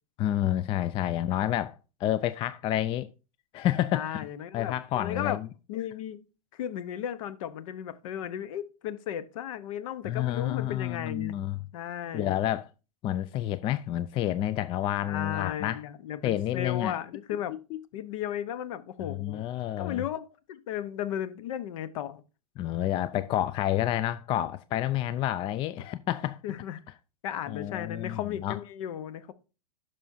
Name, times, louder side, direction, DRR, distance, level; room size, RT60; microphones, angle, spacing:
voice 1, 0.2-3.1 3.5-4.2 4.5-5.5 10.0-11.6 12.1-12.7 13.0-15.8 16.2-17.0 17.5-17.8 19.0-20.0 22.6-26.4 27.5-28.6, left 12 dB, 25° left, 0.4 m, -29 dB
voice 2, 3.9-5.4 5.7-6.2 6.5-11.4 11.7-12.4 15.0-17.5 17.9-19.4 19.8-22.2 26.4-26.8 27.2-29.3, left 10 dB, 60° left, 1.0 m, -35 dB
11.0 x 6.1 x 2.7 m
hypercardioid pair, 110°, 20 cm